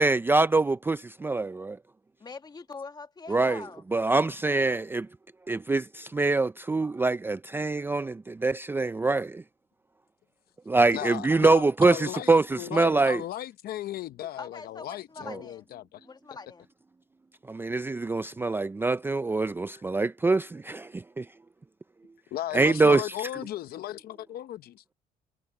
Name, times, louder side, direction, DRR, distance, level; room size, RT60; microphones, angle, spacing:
voice 1, 0.0-1.8 3.3-3.6 3.9-5.1 5.5-9.4 10.7-13.2 15.3-15.4 17.5-21.3 22.5-23.3, right 3 dB, 15° right, 0.4 m, -24 dB
voice 2, 2.2-3.8 14.4-15.7 16.0-16.7, left 4 dB, 25° left, 1.8 m, -43 dB
voice 3, 10.9-16.1 19.7-19.8 22.3-24.8, left 13 dB, 65° left, 0.8 m, -36 dB
cardioid pair, 110°, 17 cm